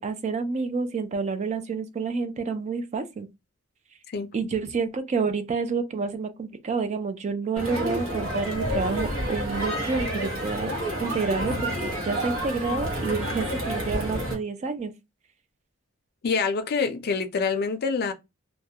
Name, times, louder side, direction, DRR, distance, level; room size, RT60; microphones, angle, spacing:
voice 1, 0.0-3.3 4.3-10.7 11.0-14.9, right 4 dB, 35° right, 0.3 m, -29 dB
Crowd, 7.6-14.3, equal, 70° right, 0.9 m, -29 dB
voice 2, 16.2-18.1, left 5 dB, 50° left, 0.4 m, -26 dB
2.2 x 2.0 x 2.7 m
head